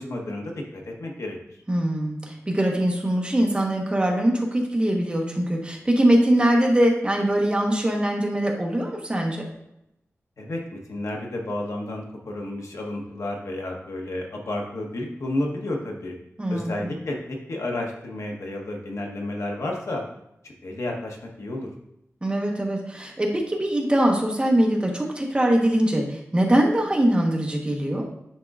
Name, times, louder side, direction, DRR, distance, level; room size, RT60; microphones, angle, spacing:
voice 1, 0.0-1.4 10.4-16.1 16.5-20.0 20.4-21.7, left 1 dB, 80° left, 0 dB, 1.1 m, -31 dB
voice 2, 1.7-9.4 16.4-16.9 22.2-28.1, right 1 dB, 20° right, 0 dB, 1.1 m, -22 dB
10.5 x 3.8 x 2.4 m, 0.81 s
wide cardioid pair, 110°, 5 cm